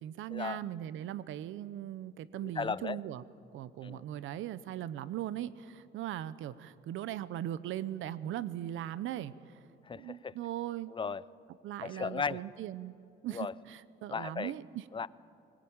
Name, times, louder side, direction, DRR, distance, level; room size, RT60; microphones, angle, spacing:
voice 1, 0.0-3.2 3.5-9.6 9.9-10.9 11.6-12.9 13.2-14.8, right 12 dB, 85° right, 16 dB, 0.8 m, -39 dB
voice 2, 2.4-3.0 3.8-4.0 9.9-10.3 10.9-11.2 11.8-12.5 13.3-13.5 14.1-14.5 14.9-15.1, left 5 dB, 25° left, 19 dB, 0.5 m, -36 dB
22.0 x 19.5 x 8.9 m, 2.6 s
cardioid pair, 90°, 20 cm